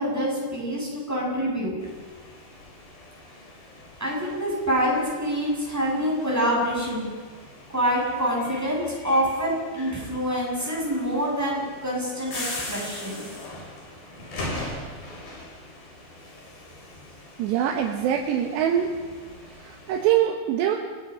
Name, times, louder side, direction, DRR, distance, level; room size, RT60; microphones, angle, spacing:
voice 1, 0.0-1.8 4.0-7.1 7.7-13.3, equal, 5° right, -4 dB, 7.6 m, -26 dB
sound 1, 1.8-20.1, left 1 dB, 60° left, 6.9 m, -41 dB
voice 2, 17.4-18.9 19.6-20.8, right 10 dB, 85° right, 2 dB, 3.4 m, -23 dB
29.5 x 19.0 x 5.6 m, 1.5 s
omnidirectional pair, 4.9 m